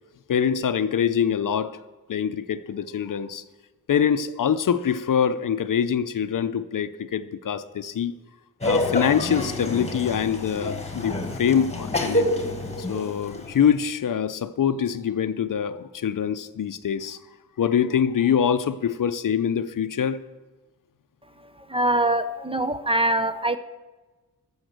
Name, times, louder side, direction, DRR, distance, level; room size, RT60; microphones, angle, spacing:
voice 1, 0.3-1.8 2.1-3.4 3.9-8.1 8.6-12.3 12.8-17.2 17.6-20.2, left 8 dB, 60° left, 12 dB, 0.6 m, -24 dB
Laughter, 8.6-13.7, left 1 dB, 15° left, 1.6 m, -28 dB
voice 2, 21.7-23.6, right 1 dB, 15° right, 11 dB, 0.6 m, -23 dB
14.0 x 7.2 x 6.6 m, 1.2 s
wide cardioid pair, 120°, 36 cm